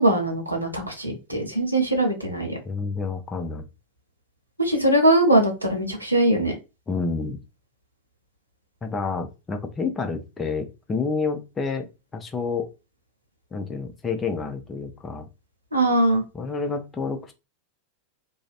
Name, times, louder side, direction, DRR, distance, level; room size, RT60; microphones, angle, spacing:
voice 1, 0.0-2.6 4.6-6.5 15.7-16.2, right 1 dB, 85° right, 2 dB, 0.7 m, -21 dB
voice 2, 2.6-3.7 6.9-7.4 8.8-12.7 13.5-15.3 16.3-17.3, left 4 dB, 20° left, 5 dB, 0.5 m, -29 dB
2.5 x 2.0 x 2.4 m, 0.27 s
figure-of-eight pair, 90°, 0 cm